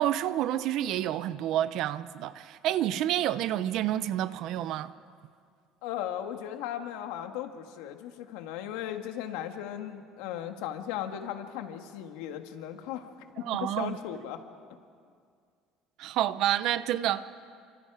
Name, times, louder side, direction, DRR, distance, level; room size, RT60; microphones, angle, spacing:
voice 1, 0.0-4.9 13.4-14.0 16.0-17.3, right 12 dB, 50° right, 0.8 m, -29 dB
voice 2, 5.8-13.1 13.4-14.4, left 10 dB, 90° left, 1.9 m, -37 dB
30.0 x 25.5 x 4.9 m
cardioid pair, 170°, 0 cm